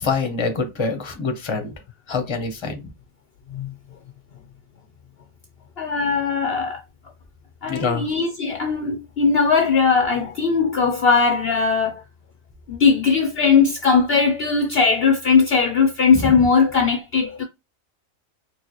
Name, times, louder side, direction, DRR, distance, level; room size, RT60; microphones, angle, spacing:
voice 1, 0.0-1.7 2.1-2.8 7.7-8.1 16.2-16.3, left 4 dB, 25° left, 0.8 m, -25 dB
voice 2, 5.8-6.8 7.6-12.0 12.7-17.4, left 5 dB, 60° left, 0.8 m, -19 dB
4.5 x 2.3 x 3.0 m
omnidirectional pair, 1.3 m